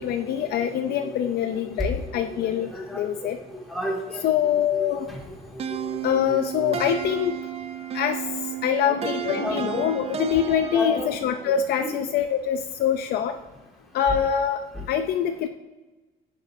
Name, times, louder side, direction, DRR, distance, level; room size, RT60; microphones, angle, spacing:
voice 1, 0.0-3.4 4.2-5.1 6.0-7.4 7.9-13.4 13.9-15.5, left 9 dB, 70° left, 7 dB, 0.5 m, -25 dB
voice 2, 1.8-3.3 3.7-4.3 4.7-7.2 8.9-9.0 9.4-9.9 10.7-11.1 11.8-11.9 14.7-14.8, left 1 dB, ahead, -2 dB, 2.2 m, -32 dB
sound 1, 5.6-11.4, right 9 dB, 35° right, 0.5 m, -33 dB
9.9 x 7.4 x 2.7 m, 1.2 s
cardioid pair, 110°, 17 cm